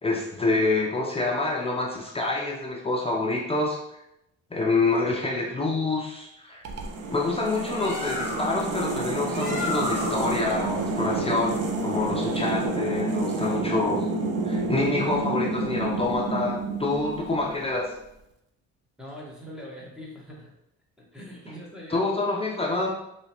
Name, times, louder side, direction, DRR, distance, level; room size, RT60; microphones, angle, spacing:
voice 1, 0.0-3.8 4.5-6.6 7.1-14.1 14.4-17.9 21.2-21.3 21.9-22.9, left 3 dB, 20° left, -3 dB, 0.5 m, -27 dB
sound 1, 6.6-17.7, right 3 dB, 55° right, 0.6 m, -29 dB
Bird, 7.6-12.7, left 2 dB, 35° left, 1.2 m, -36 dB
voice 2, 19.0-20.5 21.0-22.1, equal, ahead, -4 dB, 1.2 m, -42 dB
3.3 x 2.8 x 2.8 m, 0.84 s
cardioid pair, 90°, 30 cm